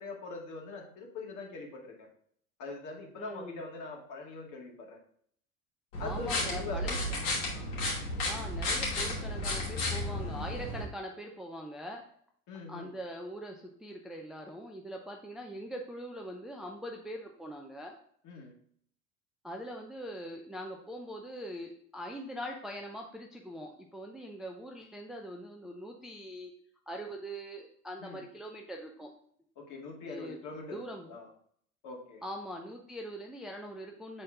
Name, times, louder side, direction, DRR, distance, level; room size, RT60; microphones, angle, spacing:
voice 1, 0.0-2.1 2.6-5.0 6.0-7.1 12.5-12.9 18.2-18.6 28.0-28.2 29.6-31.3 31.8-32.2, left 3 dB, 45° left, -1 dB, 2.2 m, -43 dB
voice 2, 3.2-3.6 6.0-7.0 8.3-12.0 12.7-17.9 19.4-26.5 26.9-29.1 30.1-31.1 32.2-34.2, equal, ahead, 1 dB, 0.6 m, -42 dB
sound 1, 5.9-10.8, left 1 dB, 65° left, 2.8 m, -33 dB
7.8 x 4.3 x 3.7 m, 0.63 s
figure-of-eight pair, 70°, 43 cm